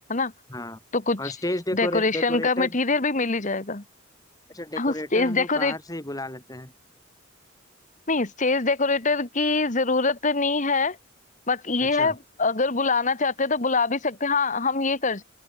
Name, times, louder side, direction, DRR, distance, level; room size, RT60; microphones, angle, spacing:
voice 1, 1.2-2.8 4.5-6.7 11.8-12.2, left 1 dB, 20° left, 2.4 m, -32 dB
voice 2, 1.7-3.8 4.8-5.7 8.1-11.0 11.5-15.2, left 3 dB, 40° left, 1.7 m, -24 dB
head